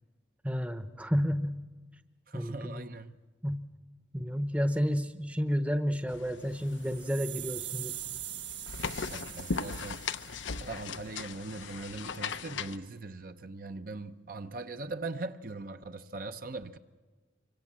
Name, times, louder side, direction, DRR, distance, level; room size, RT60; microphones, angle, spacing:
voice 1, 0.4-1.6 2.3-2.9 3.4-3.6 4.1-7.9, equal, 5° right, 0.9 m, -31 dB
voice 2, 2.3-3.2 9.1-10.1 10.6-16.8, right 3 dB, 50° right, 0.7 m, -40 dB
sound 1, 6.1-12.8, left 5 dB, 85° left, 0.8 m, -39 dB
sound 2, 6.6-10.8, right 13 dB, 70° right, 1.9 m, -42 dB
25.0 x 25.0 x 7.5 m
head